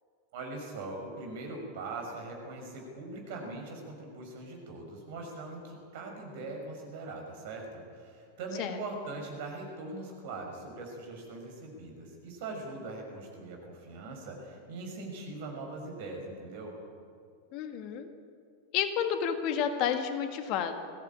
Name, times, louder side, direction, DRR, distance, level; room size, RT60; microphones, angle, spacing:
voice 1, 0.3-16.7, right 2 dB, 50° right, 2 dB, 6.0 m, -41 dB
voice 2, 17.5-18.1 18.7-20.8, left 8 dB, 40° left, 7 dB, 1.8 m, -30 dB
21.5 x 16.5 x 8.8 m, 2.3 s
figure-of-eight pair, 90°, 0 cm